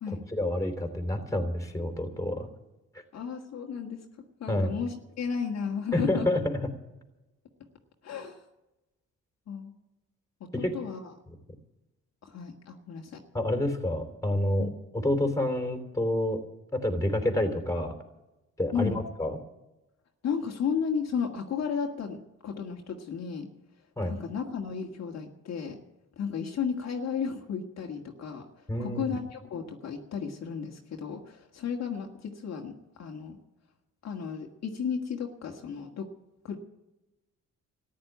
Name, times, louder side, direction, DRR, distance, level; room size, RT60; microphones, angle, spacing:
voice 1, 0.3-2.5 2.9-3.0 4.5-4.7 5.9-6.6 10.5-10.7 13.3-14.7 15.0-16.4 16.7-17.9 18.6-19.3 24.0-24.1 28.7-29.2, left 1 dB, 10° left, 5 dB, 3.2 m, -28 dB
voice 2, 3.1-4.1 4.4-6.3 8.0-8.4 9.5-9.7 10.4-11.1 12.2-13.2 14.6-14.7 18.7-19.0 20.2-23.5 24.0-25.8 26.2-33.4 34.0-36.1 36.4-36.6, left 6 dB, 60° left, 1 dB, 1.8 m, -34 dB
14.0 x 10.5 x 9.3 m, 0.98 s
cardioid pair, 90°, 30 cm